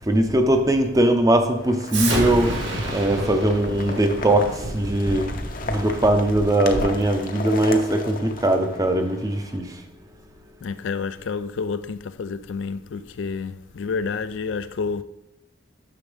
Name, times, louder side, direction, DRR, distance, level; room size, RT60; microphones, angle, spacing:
voice 1, 0.0-2.5 2.9-5.3 5.7-9.7, right 1 dB, 20° right, 0.6 m, -20 dB
sound 1, 1.6-9.6, left 3 dB, 45° left, 0.7 m, -36 dB
Explosion, 1.9-7.0, right 1 dB, 80° right, 2.2 m, -29 dB
voice 2, 10.6-15.0, left 5 dB, 85° left, 0.4 m, -29 dB
9.6 x 6.1 x 3.4 m
head